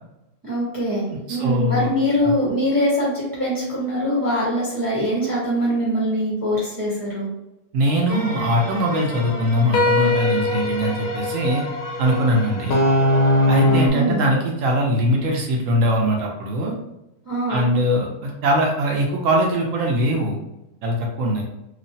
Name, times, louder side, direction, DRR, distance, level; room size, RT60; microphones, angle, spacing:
voice 1, 0.4-7.3 13.9-14.3 17.2-17.6, equal, 15° right, -6 dB, 0.7 m, -23 dB
voice 2, 1.1-1.9 2.2-2.3 7.7-11.6 12.0-12.8 13.5-16.7 17.5-20.4 20.8-21.4, equal, 65° right, 0 dB, 0.9 m, -21 dB
sound 1, 8.1-13.9, left 1 dB, 65° left, 0.9 m, -22 dB
3.0 x 2.3 x 2.6 m, 0.90 s
omnidirectional pair, 1.7 m